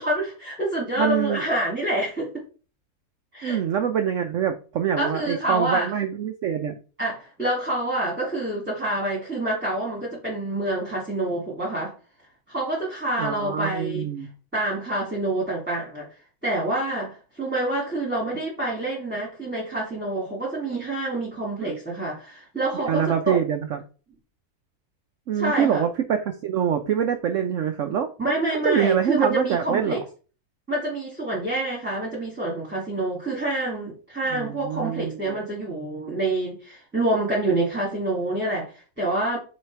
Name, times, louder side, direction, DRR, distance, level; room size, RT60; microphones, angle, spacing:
voice 1, 0.0-2.4 3.3-3.6 5.0-5.9 7.0-11.9 12.5-14.1 14.5-16.1 16.4-23.4 25.4-25.8 28.2-30.0 30.7-39.4, right 1 dB, 5° right, 2.0 m, -27 dB
voice 2, 1.0-1.4 3.4-6.7 13.2-14.3 21.6-21.8 22.7-23.8 25.3-28.1 28.6-30.0 34.3-35.4, right 8 dB, 65° right, 0.8 m, -25 dB
6.3 x 4.0 x 4.6 m
omnidirectional pair, 1.7 m